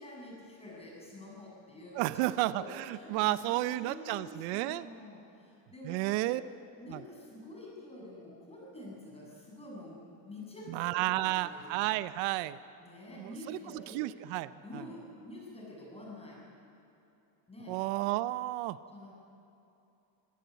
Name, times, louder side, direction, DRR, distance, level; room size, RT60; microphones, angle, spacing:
voice 1, 0.0-10.0 10.3-11.9 12.8-14.0 14.6-16.4 17.5-17.8 18.9-19.1, left 1 dB, 10° left, -3 dB, 7.1 m, -48 dB
voice 2, 2.0-4.9 5.8-6.4 6.9-7.0 10.7-12.6 13.2-14.8 17.7-18.8, right 17 dB, 85° right, 15 dB, 0.8 m, -32 dB
24.5 x 17.0 x 8.2 m, 2.9 s
cardioid pair, 155°, 48 cm